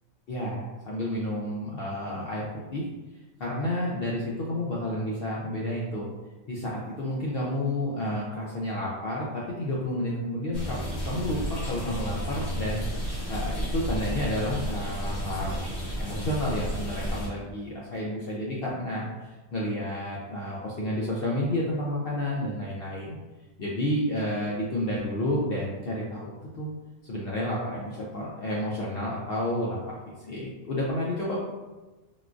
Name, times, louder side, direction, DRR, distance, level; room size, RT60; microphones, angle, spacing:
voice 1, 0.3-2.9 3.4-6.1 6.5-15.6 16.0-23.2 23.6-26.3 26.5-26.7 27.1-31.4, left 1 dB, 75° left, -4 dB, 0.5 m, -30 dB
sound 1, 10.5-17.3, equal, 55° left, 1.1 m, -32 dB
3.7 x 2.3 x 2.4 m, 1.2 s
omnidirectional pair, 1.5 m